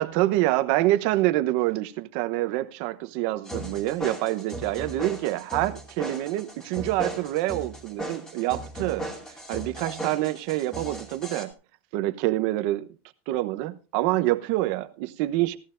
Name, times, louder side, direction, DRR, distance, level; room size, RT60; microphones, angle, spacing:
voice 1, 0.0-9.1 9.5-11.5 11.9-12.9 13.3-15.6, right 16 dB, 65° right, 0.9 m, -26 dB
sound 1, 3.5-11.5, right 1 dB, 10° left, 2.5 m, -37 dB
16.5 x 14.0 x 2.6 m
cardioid pair, 155°, 6 cm